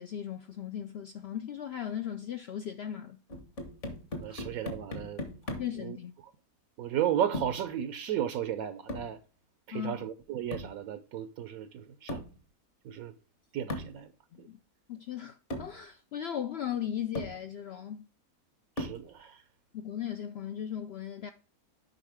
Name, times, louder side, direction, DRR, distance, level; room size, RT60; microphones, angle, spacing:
voice 1, 0.0-3.2 4.3-4.4 5.6-6.1 9.7-10.0 14.3-14.6 14.9-18.1 19.7-21.3, left 9 dB, 70° left, 0.6 m, -37 dB
sound 1, 3.3-5.8 7.3-7.7 8.9-9.2 10.5-10.8 12.1-12.4 13.7-14.0 15.0-15.1 15.5-15.8 16.6-16.7 17.1-17.4 18.8-19.1, left 1 dB, 50° left, 1.8 m, -38 dB
voice 2, 4.2-5.2 5.5-6.3 6.8-9.2 9.7-12.2 12.8-13.2 13.5-14.1 14.4-14.5 18.8-19.4, right 10 dB, 75° right, 1.0 m, -34 dB
8.0 x 5.4 x 3.4 m
omnidirectional pair, 1.6 m